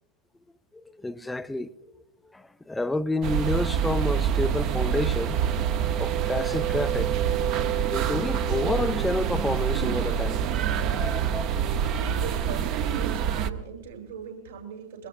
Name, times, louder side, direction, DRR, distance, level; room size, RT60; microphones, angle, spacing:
voice 1, 1.0-1.7 2.3-5.4 5.9-7.1 7.4-7.6 7.9-10.4 10.9-11.5, left 2 dB, 5° left, 0.4 m, -29 dB
sound 1, 3.2-13.5, right 8 dB, 40° right, 0.7 m, -26 dB
voice 2, 12.0-15.1, right 7 dB, 70° right, 7.6 m, -39 dB
24.5 x 22.0 x 2.4 m
figure-of-eight pair, 90°, 0 cm